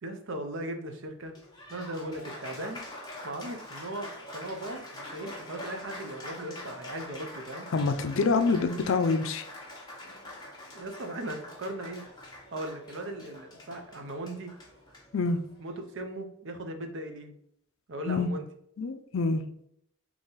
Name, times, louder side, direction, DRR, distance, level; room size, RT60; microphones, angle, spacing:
voice 1, 0.0-1.3 1.7-2.8 3.2-7.7 10.7-12.1 12.5-14.5 15.6-17.3 17.9-18.5, right 1 dB, 60° right, 6 dB, 0.7 m, -38 dB
Applause, 1.2-15.9, left 1 dB, 20° left, 1.0 m, -45 dB
voice 2, 7.7-9.4 15.1-15.4 18.0-18.3 18.8-19.4, left 4 dB, 65° left, 8 dB, 0.4 m, -26 dB
3.8 x 3.0 x 3.9 m, 0.70 s
head